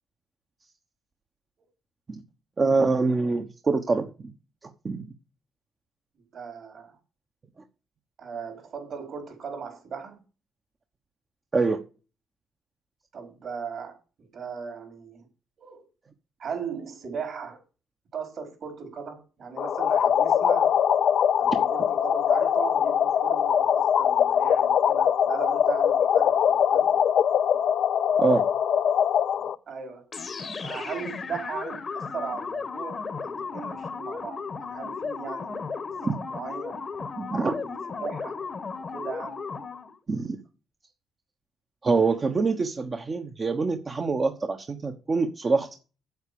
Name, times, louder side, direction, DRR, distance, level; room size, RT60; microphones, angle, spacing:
voice 1, 2.6-4.3 4.8-5.0 11.5-11.8 28.2-28.4 37.2-37.6 40.1-40.4 41.8-45.8, right 4 dB, 35° right, 1.2 m, -25 dB
voice 2, 6.3-7.0 8.2-10.2 13.1-15.3 15.6-15.9 16.4-17.6 18.1-20.7 21.4-26.9 29.4-30.1 30.6-36.9 37.6-38.4 38.9-39.4, right 6 dB, 60° right, 4.8 m, -38 dB
sound 1, 19.6-29.5, left 8 dB, 65° left, 0.7 m, -22 dB
sound 2, 30.1-40.0, left 5 dB, 40° left, 1.1 m, -35 dB
8.1 x 8.0 x 7.0 m
cardioid pair, 90°, 0 cm